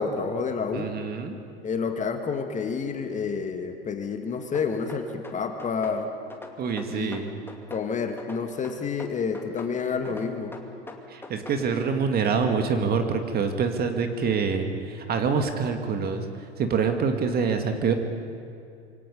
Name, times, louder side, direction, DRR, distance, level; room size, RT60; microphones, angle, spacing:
voice 1, 0.0-0.9 1.6-6.1 6.9-7.2 7.7-10.5, left 5 dB, 25° left, 6 dB, 1.9 m, -29 dB
voice 2, 0.7-1.4 6.6-7.3 11.1-16.3 16.6-17.9, right 5 dB, 30° right, 6 dB, 2.1 m, -26 dB
sound 1, 4.5-6.0 6.3-7.9 8.2-9.8 10.1-11.6, left 2 dB, 5° left, 2.3 m, -43 dB
26.5 x 24.0 x 5.4 m, 2.5 s
figure-of-eight pair, 85°, 31 cm